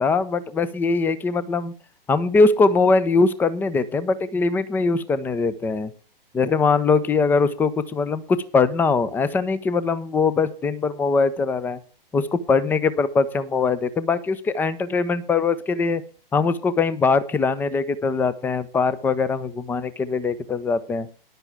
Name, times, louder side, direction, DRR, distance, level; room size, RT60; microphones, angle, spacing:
voice 1, 0.0-1.7 2.1-5.9 6.3-11.8 12.1-16.0 16.3-21.1, left 4 dB, 5° left, 17 dB, 0.5 m, -21 dB
13.5 x 10.5 x 3.5 m, 0.38 s
figure-of-eight pair, 110°, 29 cm